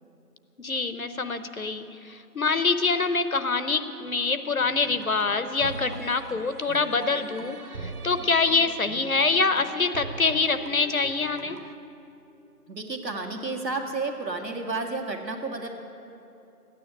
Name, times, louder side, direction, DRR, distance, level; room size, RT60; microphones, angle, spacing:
voice 1, 0.6-11.6, left 4 dB, 60° left, 11 dB, 0.8 m, -25 dB
sound 1, 4.6-11.7, right 4 dB, 65° right, 0.9 m, -41 dB
voice 2, 12.7-15.7, right 3 dB, 85° right, 3 dB, 2.0 m, -31 dB
13.5 x 9.4 x 8.8 m, 2.8 s
figure-of-eight pair, 170°, 49 cm